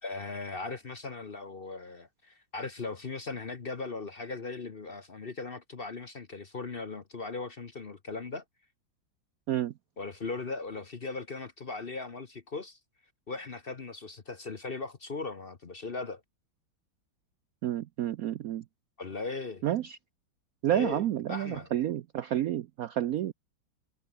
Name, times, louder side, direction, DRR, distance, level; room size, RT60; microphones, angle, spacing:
voice 1, 0.0-8.4 10.0-12.8 13.3-16.2 19.0-19.6 20.7-21.7, left 3 dB, 35° left, 1.0 m, -38 dB
voice 2, 17.6-18.6 19.6-20.0 20.6-23.3, right 12 dB, 90° right, 0.7 m, -30 dB
omnidirectional pair, 2.2 m